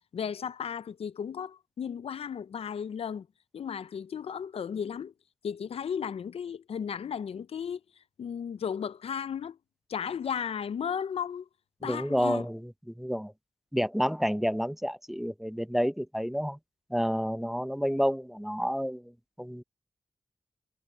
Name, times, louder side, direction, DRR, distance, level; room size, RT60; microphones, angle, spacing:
voice 1, 0.0-3.3 3.5-5.1 5.4-7.8 8.2-9.6 9.9-11.5 11.8-12.5, left 7 dB, 80° left, 0.4 m, -35 dB
voice 2, 11.8-12.6 12.9-13.3 13.7-16.6 16.9-19.0 19.4-19.6, equal, ahead, 0.6 m, -29 dB
wide cardioid pair, 145°, 10 cm